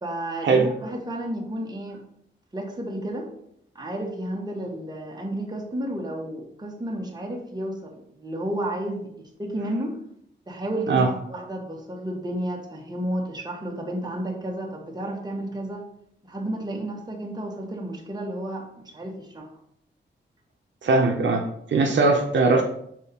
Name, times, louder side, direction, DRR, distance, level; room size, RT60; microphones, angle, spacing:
voice 1, 0.0-2.0 2.5-3.3 3.7-9.1 9.4-9.9 10.5-15.8 16.3-18.7 18.9-19.5, right 1 dB, 20° right, -1 dB, 1.5 m, -32 dB
voice 2, 20.8-21.4 21.7-22.6, right 3 dB, 70° right, 2 dB, 0.8 m, -20 dB
6.2 x 4.1 x 4.3 m, 0.72 s
wide cardioid pair, 95°, 20 cm